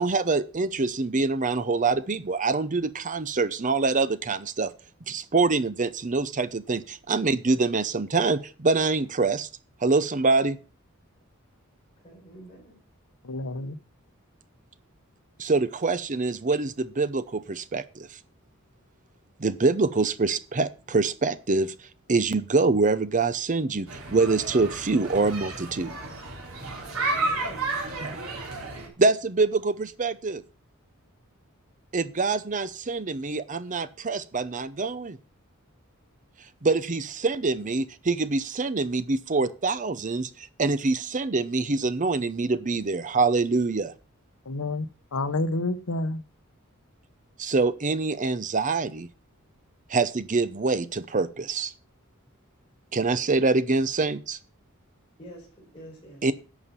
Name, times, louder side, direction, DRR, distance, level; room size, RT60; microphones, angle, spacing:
voice 1, 0.0-4.7 5.1-9.5 9.8-10.6 15.4-18.1 19.4-21.7 22.1-25.9 28.0-28.2 29.0-30.4 31.9-35.2 36.6-43.9 47.4-49.1 49.9-51.7 52.9-54.4 56.2-56.3, right 3 dB, 35° right, 0.7 m, -25 dB
voice 2, 12.0-12.8 27.1-27.6 55.2-56.2, right 1 dB, 25° left, 4.7 m, -46 dB
voice 3, 13.2-13.8 44.5-44.8 45.1-46.2, left 2 dB, 85° left, 0.9 m, -28 dB
sound 1, 23.9-28.9, right 3 dB, 75° right, 4.0 m, -32 dB
11.5 x 7.1 x 5.6 m
head